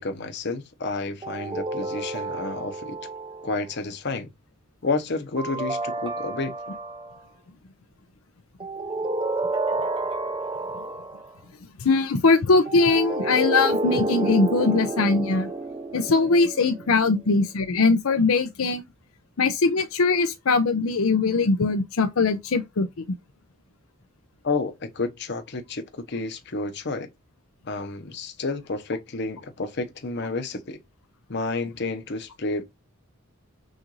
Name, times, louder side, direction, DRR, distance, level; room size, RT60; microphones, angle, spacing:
voice 1, 0.0-3.0 3.4-4.3 4.8-6.5 24.4-27.1 27.7-30.8 31.3-32.6, left 3 dB, 55° left, 0.8 m, -30 dB
sound 1, 1.2-3.7 5.4-7.2 8.6-11.3 12.7-17.2, right 2 dB, 25° right, 0.5 m, -30 dB
voice 2, 11.8-15.5 15.9-18.8 19.4-22.9, left 3 dB, 80° left, 0.6 m, -21 dB
6.3 x 2.5 x 3.1 m
head